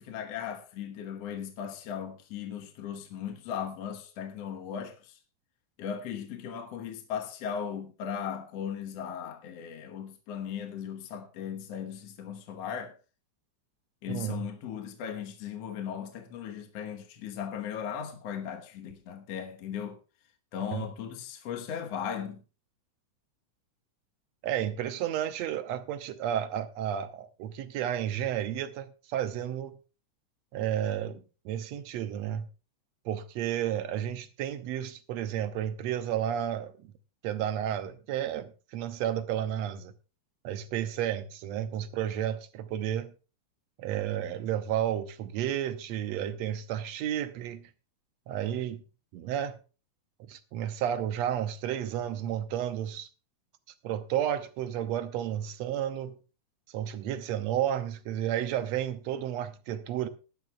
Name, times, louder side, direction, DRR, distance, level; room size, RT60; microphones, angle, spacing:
voice 1, 0.0-5.2 5.8-13.0 14.0-20.0 20.5-22.4, left 8 dB, 60° left, 2.1 m, -37 dB
voice 2, 14.1-14.4 20.7-20.9 24.4-29.7 30.5-32.4 33.1-36.9 37.2-39.9 40.4-43.1 43.8-47.7 48.3-48.8 49.1-49.6 50.2-53.1 53.8-56.2 56.7-60.1, right 10 dB, 70° right, 1.9 m, -32 dB
18.5 x 11.5 x 2.3 m
omnidirectional pair, 3.5 m